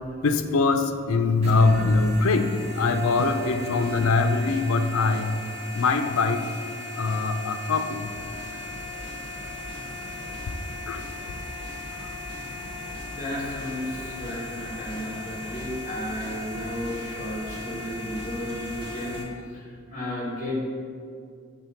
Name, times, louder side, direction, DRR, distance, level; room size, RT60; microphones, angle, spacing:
voice 1, 0.2-5.4 5.7-6.4 7.0-8.1 10.9-11.0, left 3 dB, 85° left, 8 dB, 0.5 m, -22 dB
sound 1, 1.4-19.2, left 3 dB, 30° right, 1.0 m, -38 dB
sound 2, 3.0-19.2, right 1 dB, 55° right, 1.4 m, -43 dB
voice 2, 13.1-19.3 19.5-20.6, left 1 dB, 40° left, -3 dB, 1.5 m, -33 dB
6.6 x 3.7 x 5.7 m, 2.4 s
head